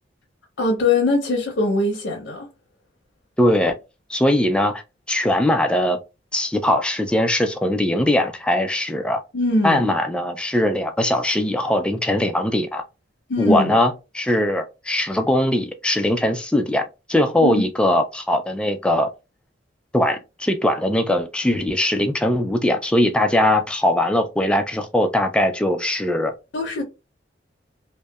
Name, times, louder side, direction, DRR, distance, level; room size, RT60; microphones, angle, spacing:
voice 1, 0.6-2.5 9.3-9.9 13.3-13.8 17.4-17.6 26.5-26.8, left 2 dB, 80° left, 0.6 m, -21 dB
voice 2, 3.4-3.7 4.1-4.8 5.1-6.0 6.3-9.2 9.6-12.8 13.4-19.1 19.9-26.3, left 1 dB, 5° left, 0.3 m, -20 dB
2.7 x 2.1 x 2.2 m
head